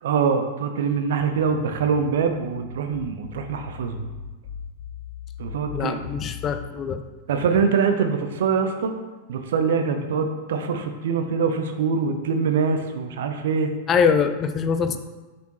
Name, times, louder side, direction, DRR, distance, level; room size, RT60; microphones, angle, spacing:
voice 1, 0.0-4.1 5.4-6.0 7.3-8.9 9.3-13.7, right 5 dB, 60° right, 6 dB, 0.7 m, -24 dB
sound 1, 1.7-6.7, left 8 dB, 55° left, 2.1 m, -39 dB
voice 2, 5.7-7.0 13.9-15.0, left 6 dB, 30° left, 9 dB, 0.5 m, -23 dB
6.8 x 6.2 x 3.1 m, 1.2 s
figure-of-eight pair, 90°, 0 cm